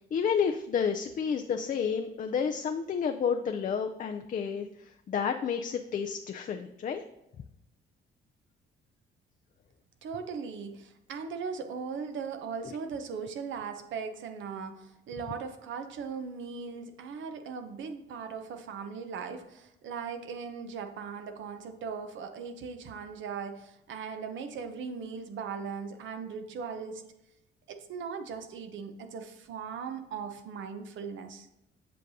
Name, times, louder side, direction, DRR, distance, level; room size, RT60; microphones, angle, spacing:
voice 1, 0.1-7.0, left 6 dB, 40° left, 5 dB, 0.4 m, -30 dB
voice 2, 10.0-27.0 27.7-31.5, right 6 dB, 75° right, 7 dB, 0.8 m, -39 dB
7.6 x 6.3 x 2.7 m, 0.89 s
cardioid pair, 90°, 20 cm